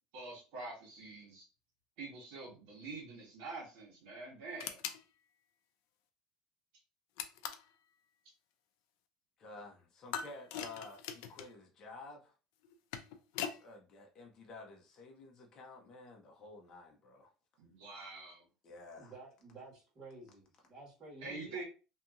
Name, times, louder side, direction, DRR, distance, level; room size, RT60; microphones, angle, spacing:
voice 1, 0.1-1.4 2.0-4.8 17.6-18.4 21.2-21.6, right 3 dB, 75° right, -3 dB, 1.2 m, -46 dB
sound 1, 4.6-5.0 7.2-7.7 10.1-11.5 12.6-13.6, left 8 dB, 85° left, 0.3 m, -41 dB
voice 2, 9.4-12.3 13.4-17.3 18.6-19.1, left 3 dB, 30° left, 1 dB, 0.6 m, -52 dB
voice 3, 18.9-21.6, right 2 dB, 25° right, -10 dB, 1.5 m, -52 dB
2.7 x 2.7 x 2.3 m, 0.34 s
cardioid pair, 165°, 2 cm